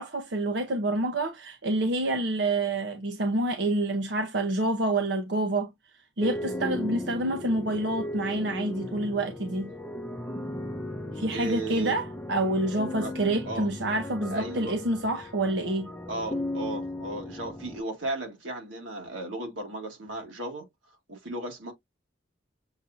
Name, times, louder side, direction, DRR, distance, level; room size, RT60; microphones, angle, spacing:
voice 1, 0.0-5.7 6.2-9.7 11.1-15.9, right 1 dB, 65° right, 0.7 m, -28 dB
sound 1, 6.2-17.8, left 1 dB, 10° left, 0.6 m, -36 dB
voice 2, 11.3-12.0 12.9-13.1 13.4-13.7 14.3-14.8 16.1-20.7 21.1-21.7, right 2 dB, 90° right, 2.0 m, -35 dB
7.1 x 2.6 x 2.6 m
head